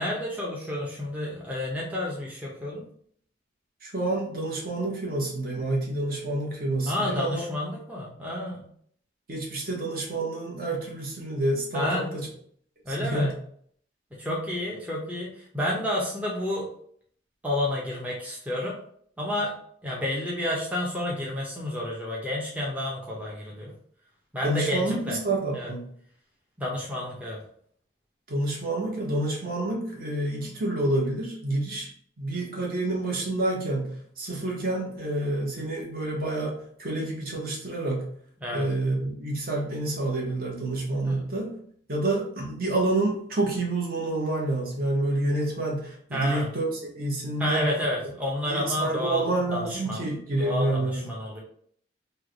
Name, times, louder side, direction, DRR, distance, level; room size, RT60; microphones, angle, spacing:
voice 1, 0.0-2.9 6.9-8.7 11.7-12.2 12.8-13.3 14.1-16.7 17.4-18.8 19.2-19.5 19.8-23.7 24.3-25.2 25.5-25.7 26.6-27.4 38.4-38.7 41.1-41.2 46.1-46.5 47.4-49.2 49.5-50.0 50.4-51.4, left 1 dB, 10° right, -4 dB, 0.5 m, -30 dB
voice 2, 3.8-7.5 9.3-12.3 13.0-13.3 24.4-25.8 28.3-31.9 32.2-38.1 38.5-41.5 41.9-47.6 48.5-51.1, right 2 dB, 50° right, -1 dB, 0.9 m, -28 dB
3.2 x 2.1 x 3.7 m, 0.62 s
head